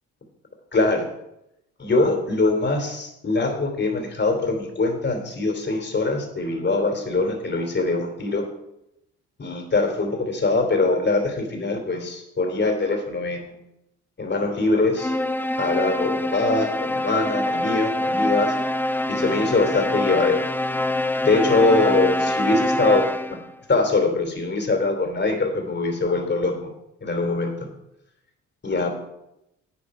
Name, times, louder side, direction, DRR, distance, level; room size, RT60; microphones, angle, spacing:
voice 1, 0.7-1.1 1.8-8.5 9.4-13.5 14.2-15.1 15.6-18.5 19.1-20.5 21.2-23.4 23.7-26.7 27.0-27.6 28.6-28.9, left 3 dB, 35° left, 4 dB, 3.0 m, -23 dB
sound 1, 15.0-23.5, left 1 dB, 5° left, 0.6 m, -25 dB
11.0 x 9.6 x 4.9 m, 0.85 s
cardioid pair, 90°, 30 cm